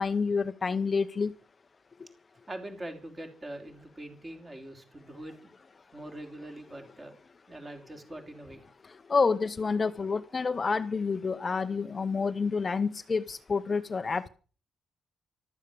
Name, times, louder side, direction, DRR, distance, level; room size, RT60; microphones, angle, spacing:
voice 1, 0.0-1.3 9.1-14.3, left 4 dB, 30° left, 11 dB, 0.7 m, -28 dB
voice 2, 2.5-5.3 5.9-7.2 7.5-8.6, right 1 dB, 20° right, 5 dB, 3.5 m, -43 dB
14.5 x 13.0 x 6.8 m, 0.40 s
cardioid pair, 145°, 0 cm